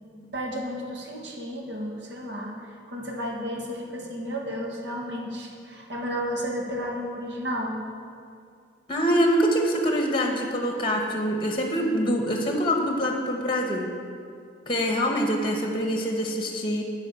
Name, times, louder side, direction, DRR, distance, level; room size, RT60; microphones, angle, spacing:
voice 1, 0.3-7.8, equal, 60° right, -1 dB, 1.6 m, -32 dB
voice 2, 8.9-13.9 14.7-16.8, equal, 25° left, 2 dB, 1.0 m, -25 dB
9.3 x 5.7 x 8.2 m, 2.4 s
head